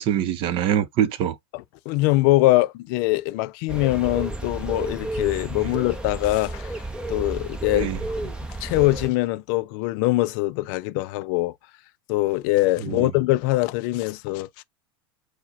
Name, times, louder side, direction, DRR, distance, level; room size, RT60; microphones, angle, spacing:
voice 1, 0.0-1.4 5.6-5.7 7.7-8.0 12.8-13.1, right 10 dB, 45° right, 0.7 m, -24 dB
voice 2, 1.5-6.8 7.1-7.9 8.2-8.3 8.6-11.5 12.1-14.6, left 19 dB, 55° left, 0.4 m, -23 dB
sound 1, 3.7-9.1, right 2 dB, 10° right, 0.7 m, -32 dB
4.6 x 2.2 x 4.0 m
supercardioid pair, 120°, 13 cm